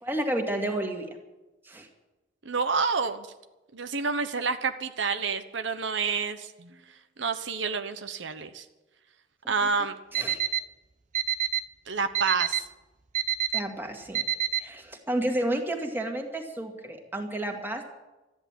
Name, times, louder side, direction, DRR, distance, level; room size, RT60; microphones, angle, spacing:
voice 1, 0.0-1.1 1.6-1.9 10.1-10.4 13.5-14.2 14.6-17.9, right 1 dB, 10° right, 3 dB, 2.1 m, -31 dB
voice 2, 2.4-3.3 3.7-6.7 7.2-8.6 9.5-9.9 11.9-12.6, right 5 dB, 80° right, 9 dB, 1.0 m, -28 dB
Alarm, 10.1-10.6 11.1-11.6 12.1-12.6 13.1-13.6 14.1-14.6, right 11 dB, 40° right, 0.6 m, -26 dB
13.5 x 10.5 x 9.0 m, 1.1 s
head